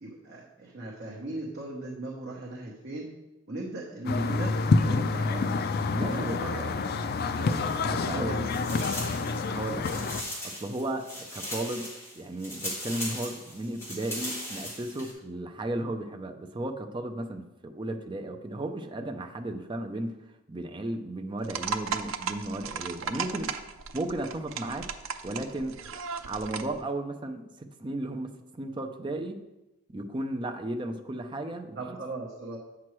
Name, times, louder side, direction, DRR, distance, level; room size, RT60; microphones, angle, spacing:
voice 1, 0.0-3.1 3.5-5.6 6.0-7.7 8.0-8.8 31.7-32.6, right 2 dB, 55° right, -3 dB, 1.0 m, -38 dB
sound 1, 4.1-10.2, left 3 dB, 50° left, 0.4 m, -28 dB
voice 2, 5.9-6.4 7.4-7.5 7.8-8.5 9.5-10.1 10.4-11.9 12.1-20.1 20.5-23.5 23.9-24.9 25.2-29.4 29.9-32.0, right 1 dB, 25° right, 5 dB, 0.5 m, -35 dB
sound 2, 7.4-8.2 8.4-15.1, left 1 dB, 15° left, 1.7 m, -39 dB
sound 3, 21.4-26.8, right 6 dB, 85° right, 0.5 m, -36 dB
8.4 x 6.0 x 3.1 m, 1.0 s
head